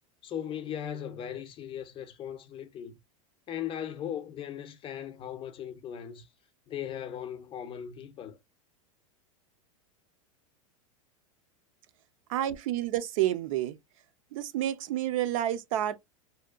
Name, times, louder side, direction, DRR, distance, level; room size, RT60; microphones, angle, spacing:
voice 1, 0.2-3.0 3.5-6.3 6.7-8.4, left 9 dB, 30° left, 0.5 m, -38 dB
voice 2, 12.3-13.8 14.3-16.0, right 12 dB, 75° right, 0.4 m, -29 dB
2.7 x 2.1 x 2.4 m
supercardioid pair, 120°, 17 cm